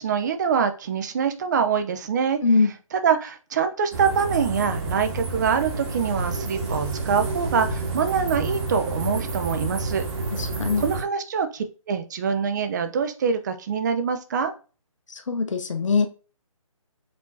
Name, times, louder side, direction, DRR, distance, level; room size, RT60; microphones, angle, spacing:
voice 1, 0.0-2.4 2.9-10.0 10.8-14.5, right 6 dB, 30° right, 8 dB, 0.6 m, -24 dB
voice 2, 2.4-2.7 10.3-10.9 15.1-16.1, left 4 dB, 60° left, 6 dB, 0.8 m, -22 dB
sound 1, 3.9-11.0, right 2 dB, 50° right, 2.0 m, -29 dB
5.0 x 3.5 x 2.7 m, 0.34 s
figure-of-eight pair, 150°, 18 cm